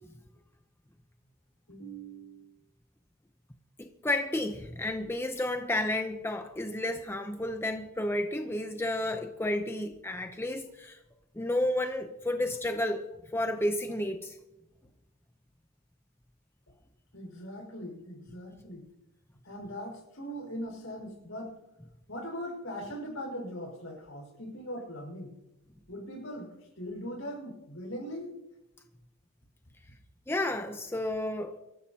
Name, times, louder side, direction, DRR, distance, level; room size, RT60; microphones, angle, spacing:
voice 1, 1.7-2.5 17.1-18.9 19.4-21.5 22.1-25.3 25.9-28.3, equal, 65° left, 5.2 m, -40 dB
voice 2, 3.8-11.0 11.4-13.1 13.3-14.4 30.3-31.6, left 1 dB, 10° left, 0.7 m, -31 dB
24.5 x 14.0 x 2.9 m
head